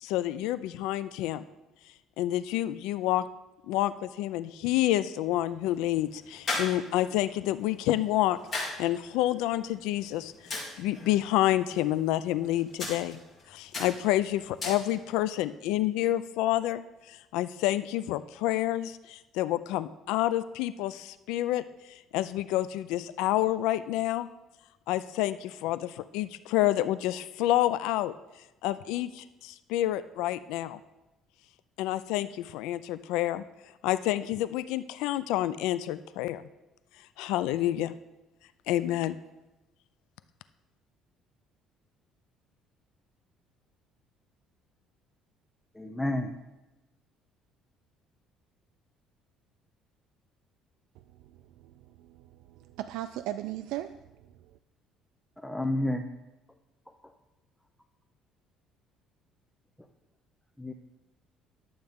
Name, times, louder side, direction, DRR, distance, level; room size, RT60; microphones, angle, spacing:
voice 1, 0.0-1.4 2.2-3.3 3.7-8.4 8.8-13.2 13.5-16.8 17.1-24.3 24.9-28.1 28.6-30.8 31.8-33.4 33.8-36.4 37.2-37.9 38.7-39.2, left 14 dB, 90° left, 0.3 m, -28 dB
sound 1, 5.2-15.3, left 2 dB, 30° left, 3.1 m, -40 dB
voice 2, 45.7-46.3 55.4-56.1 60.6-60.7, left 1 dB, 5° left, 0.5 m, -30 dB
voice 3, 51.0-54.6, right 13 dB, 85° right, 0.3 m, -39 dB
11.0 x 7.7 x 3.6 m
cardioid pair, 155°, 0 cm